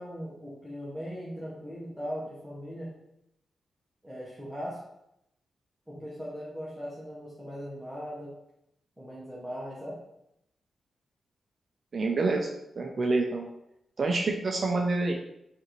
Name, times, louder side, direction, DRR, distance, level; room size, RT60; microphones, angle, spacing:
voice 1, 0.0-3.0 4.0-4.8 5.9-8.3 9.0-10.0, equal, 5° right, -7 dB, 0.8 m, -39 dB
voice 2, 11.9-12.5 12.8-13.5 14.0-15.1, right 3 dB, 35° right, 1 dB, 0.4 m, -27 dB
5.2 x 2.5 x 3.0 m, 0.81 s
wide cardioid pair, 170°, 0 cm